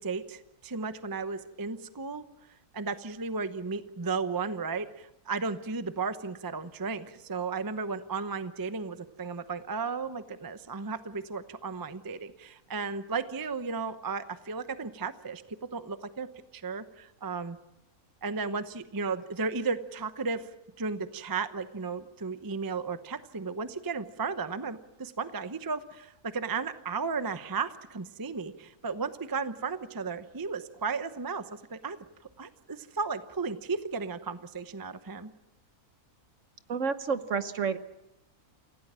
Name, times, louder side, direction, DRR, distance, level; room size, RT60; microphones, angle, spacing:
voice 1, 0.0-2.2 2.7-15.4 15.7-16.3 16.5-17.6 18.2-20.5 20.8-32.0 32.4-35.3, right 4 dB, 20° right, 11 dB, 0.7 m, -34 dB
voice 2, 36.7-37.8, right 5 dB, 55° right, 11 dB, 1.3 m, -29 dB
28.5 x 16.5 x 7.5 m, 0.91 s
omnidirectional pair, 1.6 m